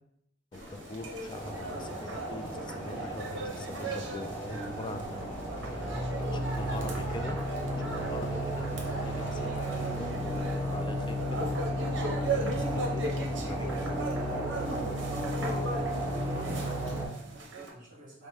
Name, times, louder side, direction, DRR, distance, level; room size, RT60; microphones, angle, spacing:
sound 1, 0.5-10.5, left 1 dB, 70° left, 1.0 m, -50 dB
voice 1, 0.5-5.3 5.7-7.4 7.8-11.5 12.3-14.2 14.7-15.1, left 2 dB, 25° left, 7 dB, 0.4 m, -44 dB
sound 2, 0.5-17.7, right 3 dB, 65° right, 0.9 m, -39 dB
sound 3, 1.3-17.1, equal, 15° right, 1.7 m, -33 dB
voice 2, 6.3-7.1 15.9-18.3, right 1 dB, 45° right, -5 dB, 1.4 m, -47 dB
5.1 x 2.1 x 4.7 m, 0.75 s
head